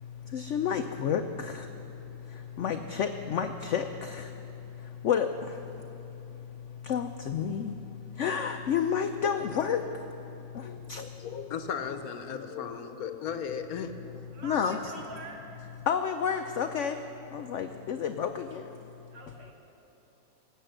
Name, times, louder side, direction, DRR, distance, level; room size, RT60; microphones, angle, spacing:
voice 1, 0.3-1.7 2.6-4.3 5.0-5.3 6.9-7.7 8.2-9.8 10.9-11.0 14.4-14.8 15.9-17.0 17.3-18.6, left 7 dB, 80° left, 7 dB, 0.6 m, -29 dB
voice 2, 10.6-13.9, left 7 dB, 65° left, 8 dB, 1.1 m, -36 dB
voice 3, 14.1-15.9 19.1-19.5, right 2 dB, 90° right, 0 dB, 2.4 m, -46 dB
18.5 x 8.0 x 7.7 m, 3.0 s
omnidirectional pair, 1.9 m